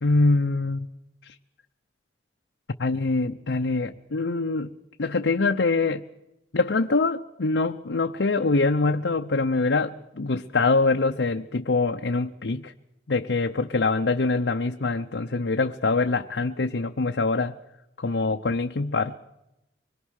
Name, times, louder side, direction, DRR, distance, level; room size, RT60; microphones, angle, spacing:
voice 1, 0.0-0.9 1.2-1.4 2.8-6.0 6.5-12.7 13.1-17.5 18.0-19.2, left 3 dB, 90° left, 5 dB, 0.8 m, -24 dB
25.0 x 21.5 x 6.5 m, 0.92 s
head